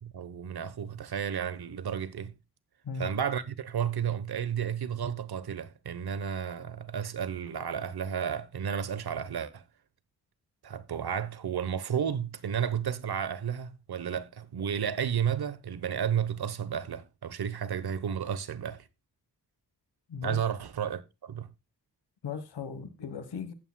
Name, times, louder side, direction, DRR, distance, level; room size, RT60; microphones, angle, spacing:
voice 1, 0.0-2.3 3.0-9.6 10.6-18.9 20.2-21.5, right 8 dB, 75° right, 1.0 m, -32 dB
voice 2, 22.2-23.5, left 6 dB, 90° left, 1.3 m, -37 dB
14.5 x 8.5 x 2.2 m
wide cardioid pair, 85°, 39 cm